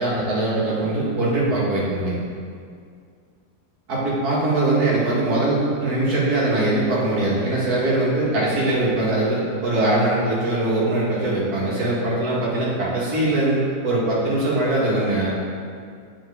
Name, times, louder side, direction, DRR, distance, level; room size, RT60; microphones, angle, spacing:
voice 1, 0.0-2.2 3.9-15.3, right 2 dB, 65° right, -6 dB, 2.2 m, -21 dB
8.9 x 5.5 x 3.6 m, 2.2 s
omnidirectional pair, 1.8 m